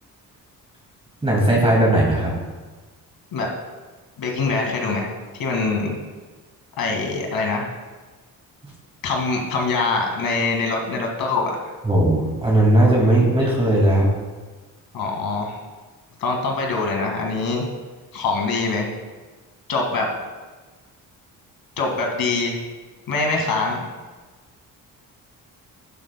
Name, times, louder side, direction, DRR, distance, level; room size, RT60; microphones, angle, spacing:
voice 1, 1.2-2.3 11.8-14.1, right 1 dB, 15° right, -4 dB, 2.2 m, -17 dB
voice 2, 4.2-5.1 5.4-6.0 6.8-7.7 9.0-11.5 14.9-15.6 16.2-17.7 18.1-18.9 19.7-20.1 21.8-22.6 23.1-23.8, left 3 dB, 70° left, 1 dB, 2.0 m, -23 dB
11.5 x 11.0 x 2.2 m, 1.3 s
cardioid pair, 120°, 36 cm